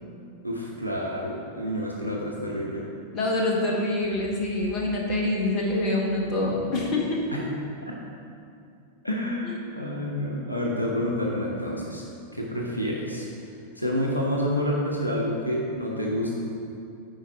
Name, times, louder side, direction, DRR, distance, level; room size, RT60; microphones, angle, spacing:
voice 1, 0.4-2.8 7.3-7.4 7.8-8.1 9.0-12.0 12.3-13.3 13.8-16.4, equal, 85° left, -2 dB, 0.9 m, -28 dB
voice 2, 3.1-7.2 9.4-9.5, left 2 dB, 35° left, -1 dB, 1.4 m, -26 dB
9.0 x 4.7 x 4.5 m, 2.5 s
figure-of-eight pair, 90°, 0 cm